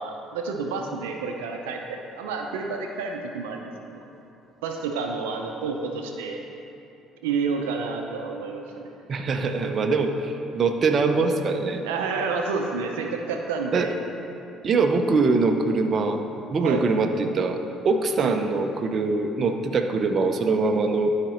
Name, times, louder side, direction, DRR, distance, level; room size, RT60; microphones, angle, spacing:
voice 1, 0.0-4.0 4.6-6.4 7.2-8.9 11.8-13.9 16.6-16.8 18.2-18.3, right 4 dB, 90° right, 3 dB, 0.6 m, -29 dB
voice 2, 9.1-11.8 13.7-13.9 14.6-16.2 16.5-17.6 17.8-21.1, right 3 dB, 45° right, 5 dB, 0.7 m, -23 dB
12.0 x 5.2 x 4.4 m, 2.9 s
supercardioid pair, 65°, 0 cm